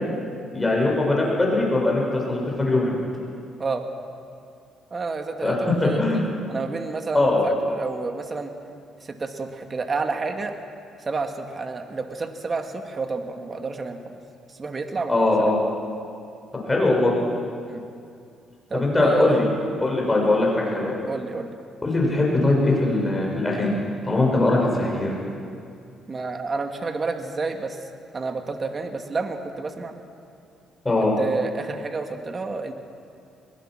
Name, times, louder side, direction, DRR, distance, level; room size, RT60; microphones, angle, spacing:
voice 1, 0.5-2.9 5.4-6.3 7.1-7.4 15.1-15.6 16.6-17.1 18.7-19.4 19.8-21.0 21.8-25.1 30.8-31.1, left 2 dB, 15° left, -2 dB, 6.0 m, -21 dB
voice 2, 4.9-8.5 9.0-10.5 11.0-14.2 14.5-15.5 17.6-17.9 18.7-19.4 20.1-20.2 21.1-21.6 26.1-27.8 28.1-30.0 31.2-32.7, right 4 dB, 35° right, 5 dB, 1.9 m, -30 dB
22.0 x 22.0 x 6.3 m, 2.4 s
cardioid pair, 85°, 0 cm